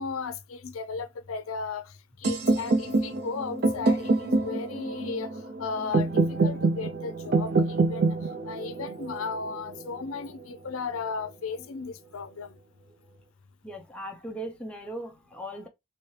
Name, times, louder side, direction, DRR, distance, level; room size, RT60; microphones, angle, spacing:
voice 1, 0.0-1.9 2.2-5.3 5.6-8.2 8.5-12.6, left 5 dB, 85° left, 0.5 m, -35 dB
sound 1, 2.2-10.2, right 3 dB, 50° right, 0.4 m, -26 dB
voice 2, 13.6-15.7, right 1 dB, 5° left, 0.5 m, -38 dB
2.8 x 2.7 x 3.2 m
head